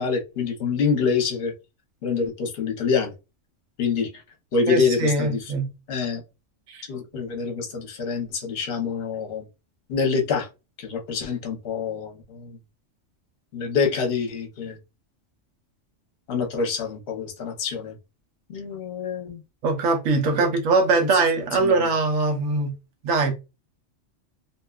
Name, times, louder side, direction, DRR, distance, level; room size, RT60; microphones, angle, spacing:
voice 1, 0.0-1.5 2.0-3.1 3.8-4.2 4.5-5.5 5.9-6.2 6.9-9.5 9.9-10.5 10.8-12.6 13.5-14.8 16.3-18.0 18.5-19.4 20.4-20.5 21.6-21.8, left 5 dB, 55° left, 0.9 m, -26 dB
voice 2, 4.7-5.7 6.7-6.9 19.6-22.7 23.0-23.3, right 3 dB, 90° right, 1.1 m, -22 dB
2.7 x 2.2 x 2.3 m
omnidirectional pair, 1.3 m